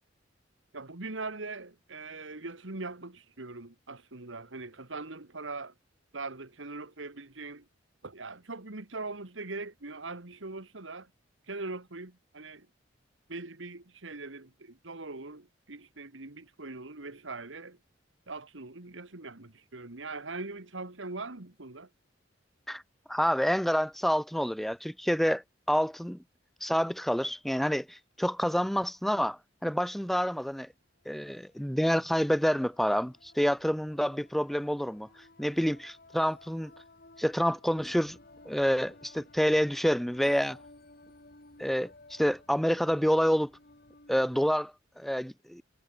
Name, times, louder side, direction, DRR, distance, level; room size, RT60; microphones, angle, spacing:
voice 1, 0.7-5.7 6.1-7.7 8.0-11.1 11.5-12.7 13.3-17.8 18.3-21.9, right 3 dB, 80° right, 2.1 m, -41 dB
voice 2, 23.1-25.4 25.7-26.2 26.6-30.7 31.1-35.1 35.4-36.7 37.2-38.2 38.5-40.6 41.6-43.5 44.1-45.6, equal, ahead, 0.5 m, -28 dB
sound 1, 31.0-44.4, left 2 dB, 55° left, 4.9 m, -57 dB
head